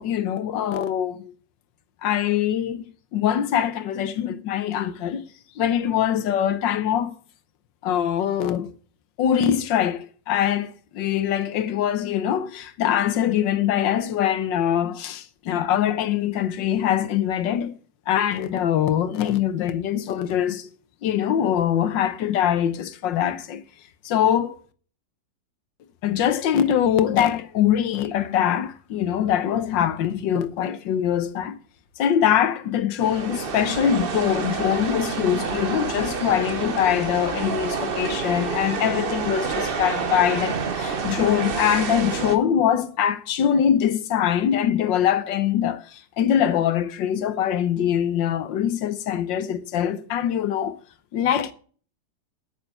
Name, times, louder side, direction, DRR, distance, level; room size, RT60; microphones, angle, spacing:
voice 1, 0.0-1.3 2.0-2.8 3.1-5.2 5.6-7.1 7.8-8.7 9.2-17.7 18.1-20.7 21.0-23.6 24.0-24.6 26.0-31.5 32.0-50.8 51.1-51.5, left 9 dB, 80° left, 1.6 m, -23 dB
sound 1, 33.0-42.4, right 5 dB, 40° right, 0.9 m, -28 dB
8.9 x 6.8 x 8.4 m
omnidirectional pair, 2.0 m